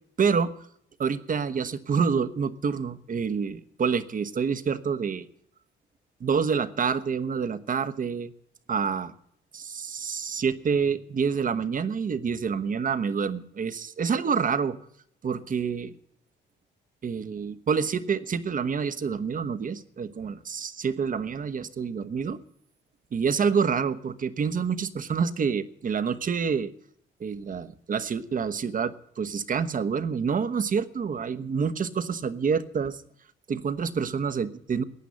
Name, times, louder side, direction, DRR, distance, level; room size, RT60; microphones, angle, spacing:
voice 1, 0.2-0.5 1.0-5.3 6.2-8.3 8.7-9.1 9.5-14.8 15.2-15.9 17.0-22.4 23.1-26.7 27.2-33.0 33.5-34.8, right 6 dB, 45° right, 13 dB, 1.1 m, -27 dB
15.0 x 9.1 x 9.6 m, 0.68 s
cardioid pair, 90°, 20 cm